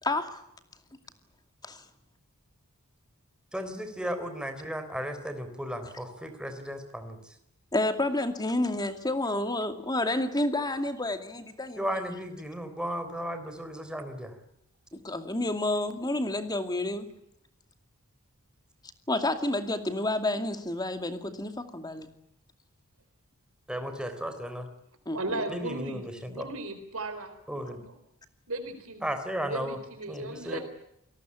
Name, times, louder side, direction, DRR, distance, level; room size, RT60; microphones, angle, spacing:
voice 1, 0.0-0.4 1.6-1.8 7.7-12.0 14.9-17.1 19.1-22.1 25.1-25.4, left 2 dB, 20° left, 8 dB, 2.4 m, -30 dB
voice 2, 3.5-7.2 11.8-14.3 23.7-24.7 25.5-26.4 27.5-27.8 29.0-29.8 30.1-30.6, equal, 5° right, 7 dB, 3.7 m, -35 dB
voice 3, 25.1-27.3 27.6-28.0 28.5-29.1 29.5-30.6, right 2 dB, 75° right, 8 dB, 4.1 m, -36 dB
28.0 x 19.5 x 8.6 m, 0.78 s
head